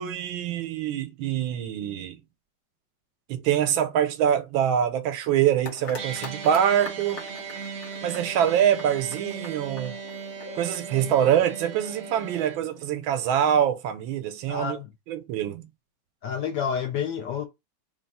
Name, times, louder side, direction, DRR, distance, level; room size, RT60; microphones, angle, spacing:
voice 1, 0.0-2.2 3.3-7.2 8.0-9.9 10.5-14.8 15.1-15.7, right 9 dB, 85° right, 1.4 m, -24 dB
sound 1, 5.6-12.9, left 3 dB, 45° left, 1.0 m, -44 dB
sound 2, 6.0-12.6, right 6 dB, 50° right, 0.9 m, -38 dB
voice 2, 14.5-14.9 16.2-17.5, left 7 dB, 70° left, 1.1 m, -29 dB
3.6 x 2.3 x 4.0 m
omnidirectional pair, 2.1 m